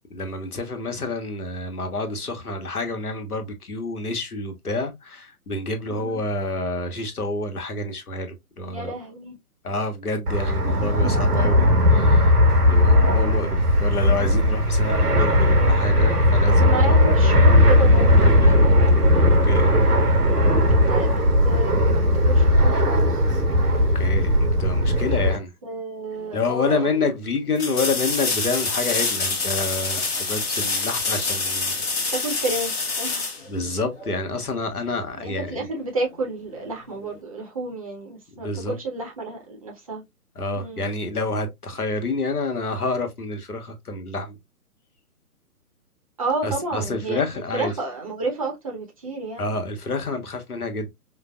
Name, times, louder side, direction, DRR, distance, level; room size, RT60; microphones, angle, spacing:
voice 1, 0.1-8.9 9.6-12.4 12.6-18.1 18.4-19.7 23.7-25.5 26.3-31.7 32.0-32.1 33.5-35.7 38.4-38.8 40.4-44.4 46.4-47.7 49.4-50.9, left 2 dB, 75° left, 1.1 m, -28 dB
voice 2, 5.9-6.2 8.7-9.4 10.6-11.1 16.5-18.3 19.7-20.1 20.7-23.2 25.2-25.3 25.6-26.9 32.1-33.3 35.1-40.0 40.5-40.8 46.2-47.2 47.5-49.5, right 2 dB, 25° right, 0.6 m, -31 dB
Fixed-wing aircraft airplane, 10.3-25.4, left 1 dB, 90° right, 1.0 m, -17 dB
sound 1, 26.2-26.3 27.6-34.2 37.0-37.1, left 4 dB, 40° left, 1.0 m, -26 dB
5.0 x 2.0 x 2.2 m
figure-of-eight pair, 130°, 45 cm